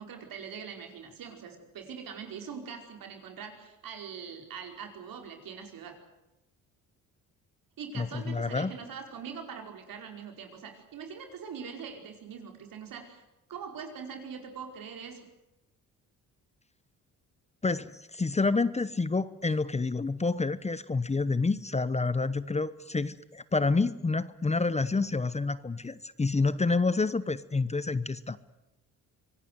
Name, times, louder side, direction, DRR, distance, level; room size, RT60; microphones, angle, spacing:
voice 1, 0.0-6.0 7.8-13.2 13.5-15.2, right 6 dB, 70° right, 4 dB, 5.0 m, -42 dB
voice 2, 8.0-8.7 17.6-28.4, left 3 dB, 20° left, 16 dB, 0.9 m, -28 dB
25.0 x 18.0 x 9.5 m, 0.94 s
cardioid pair, 90°, 35 cm